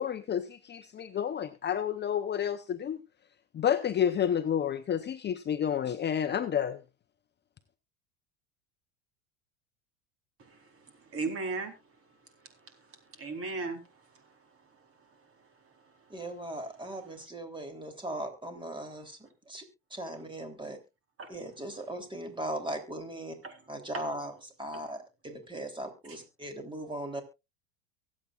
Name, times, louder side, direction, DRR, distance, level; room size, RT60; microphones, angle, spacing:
voice 1, 0.0-3.0 3.5-6.8, left 9 dB, 25° left, 0.8 m, -30 dB
voice 2, 11.1-11.7 13.2-13.8 21.2-21.3 23.4-23.5, right 3 dB, 35° right, 4.1 m, -34 dB
voice 3, 16.1-19.2 19.4-19.6 19.9-20.8 21.3-23.4 23.7-27.2, right 1 dB, 10° right, 3.4 m, -38 dB
23.5 x 8.6 x 2.5 m
supercardioid pair, 105°, 38 cm